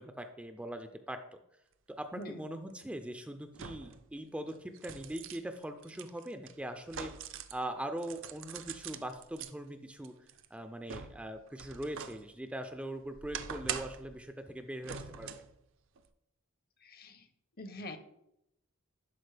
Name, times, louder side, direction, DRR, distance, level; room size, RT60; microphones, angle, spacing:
voice 1, 0.0-1.4 1.9-7.1 7.5-10.1 10.5-15.3, right 1 dB, 5° right, 7 dB, 0.3 m, -41 dB
sound 1, 2.2-2.3 3.5-4.0 4.5-7.6 8.0-9.5 10.0-12.2 12.6-14.1 14.8-15.5 16.0-16.1, right 8 dB, 65° right, 0.5 m, -43 dB
voice 2, 16.8-17.3 17.6-18.0, left 1 dB, 50° left, 9 dB, 0.7 m, -44 dB
11.0 x 4.2 x 3.3 m, 0.81 s
head